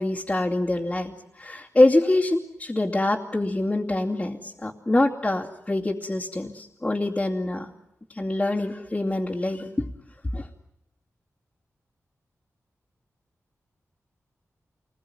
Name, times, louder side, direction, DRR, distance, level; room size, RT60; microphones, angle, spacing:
voice 1, 0.0-7.7 8.1-9.9 10.3-10.5, left 2 dB, 20° left, -6 dB, 2.6 m, -25 dB
27.5 x 21.0 x 9.6 m, 0.86 s
wide cardioid pair, 95°, 6 cm